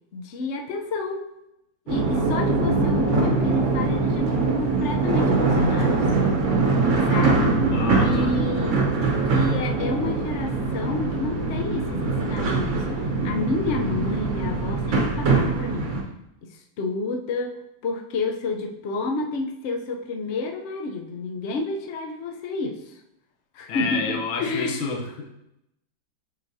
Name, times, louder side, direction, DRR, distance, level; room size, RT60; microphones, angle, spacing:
voice 1, 0.1-1.3 1.9-6.1 7.1-7.6 8.0-8.7 9.3-15.9 16.5-17.6 17.8-23.0 23.5-24.9, left 3 dB, 65° left, 3 dB, 0.7 m, -30 dB
sound 1, 1.9-16.0, right 3 dB, 50° right, 1.0 m, -22 dB
voice 2, 7.7-8.3 23.7-25.3, left 4 dB, 90° left, 2 dB, 1.7 m, -29 dB
8.0 x 5.0 x 2.7 m, 0.84 s
omnidirectional pair, 2.1 m